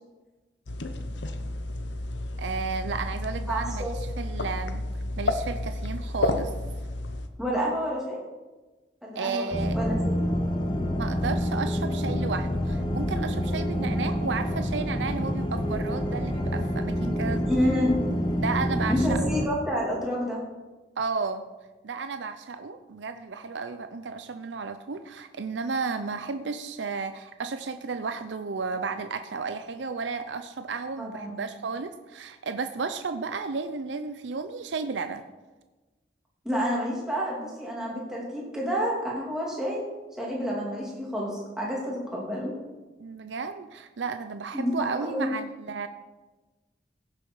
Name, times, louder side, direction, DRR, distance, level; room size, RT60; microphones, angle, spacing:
sound 1, 0.7-7.3, left 2 dB, 90° left, 0.9 m, -31 dB
voice 1, 2.4-4.8 5.2-6.5 9.2-9.8 11.0-17.5 18.4-19.2 21.0-21.4 21.8-35.3 43.0-45.9, right 4 dB, 90° right, 9 dB, 0.6 m, -33 dB
voice 2, 3.5-3.9 7.4-8.2 9.0-10.2 17.4-17.9 18.9-20.4 31.0-31.4 36.4-39.8 40.2-42.5 44.5-45.3, equal, 5° right, -5 dB, 2.9 m, -29 dB
sound 2, 9.5-19.5, equal, 25° left, 1.0 m, -27 dB
16.0 x 7.2 x 4.7 m, 1.2 s
head